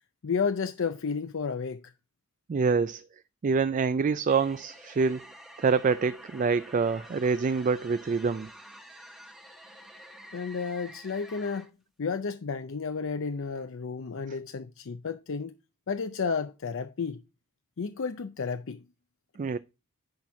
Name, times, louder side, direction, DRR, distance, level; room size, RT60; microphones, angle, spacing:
voice 1, 0.2-1.9 10.3-11.7 12.0-15.5 15.9-17.2 17.8-18.8, left 5 dB, 60° left, 0.5 m, -32 dB
voice 2, 2.5-3.0 3.4-5.3 5.6-8.5 19.4-19.6, right 5 dB, 35° right, 0.3 m, -26 dB
sound 1, 4.3-11.7, equal, ahead, 1.1 m, -49 dB
10.5 x 4.3 x 4.7 m
head